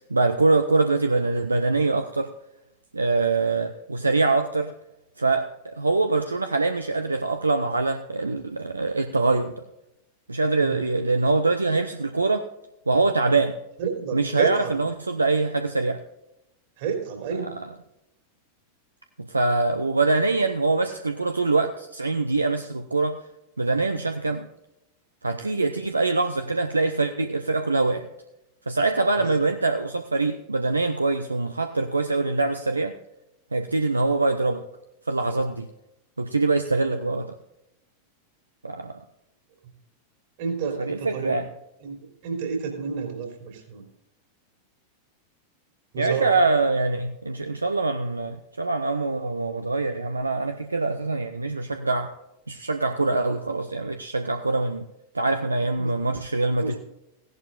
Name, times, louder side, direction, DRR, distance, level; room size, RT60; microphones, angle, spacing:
voice 1, 0.1-2.3 2.9-4.7 5.2-9.5 10.3-12.4 12.9-13.6 14.1-16.0 17.3-17.7 19.2-23.2 23.6-24.5 25.2-28.1 28.7-32.9 33.5-34.6 35.1-35.7 36.2-37.3 38.6-39.0 40.8-41.5 46.0-52.1 52.5-54.8 55.1-56.8, right 3 dB, 80° right, 7 dB, 0.6 m, -24 dB
voice 2, 13.8-14.7 16.8-17.6 29.2-29.3 40.4-41.4 41.8-42.0 42.2-43.8 45.9-46.4 55.8-56.0 56.6-56.7, right 6 dB, 50° right, 2 dB, 3.2 m, -30 dB
16.0 x 11.0 x 2.5 m, 0.85 s
figure-of-eight pair, 90°, 0 cm